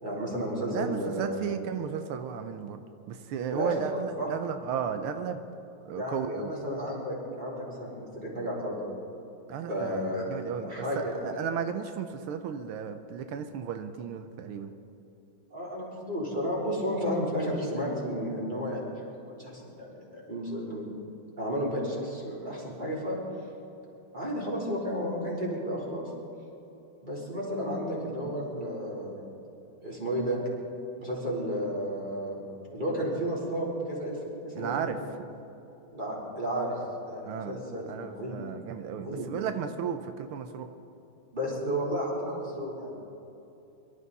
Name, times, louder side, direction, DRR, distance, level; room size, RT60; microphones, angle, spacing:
voice 1, 0.0-1.6 3.5-4.3 5.9-9.0 9.6-10.3 10.6-11.6 15.5-20.9 21.4-23.2 24.1-26.1 27.0-29.2 29.8-30.4 31.0-32.4 32.7-34.8 35.9-38.3 38.9-39.3 41.3-42.9, equal, 20° right, -5 dB, 3.9 m, -32 dB
voice 2, 0.7-2.8 3.1-5.4 5.8-6.5 9.5-14.7 34.5-35.0 37.3-37.6 37.9-40.7, right 8 dB, 90° right, 8 dB, 1.7 m, -34 dB
24.0 x 13.0 x 4.1 m, 2.9 s
omnidirectional pair, 2.3 m